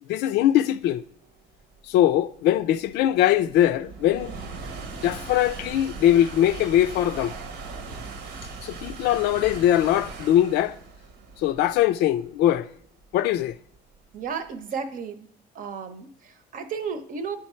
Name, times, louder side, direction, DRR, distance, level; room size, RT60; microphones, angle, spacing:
voice 1, 0.1-1.0 1.9-4.3 5.0-7.3 8.6-10.7 11.4-12.7 13.1-13.6, left 12 dB, 85° left, 0.4 m, -21 dB
sound 1, 1.2-14.5, right 4 dB, 80° right, 1.1 m, -40 dB
voice 2, 14.1-15.3 15.5-17.4, right 6 dB, 55° right, 0.9 m, -33 dB
9.5 x 3.6 x 4.4 m
cardioid pair, 110°, 17 cm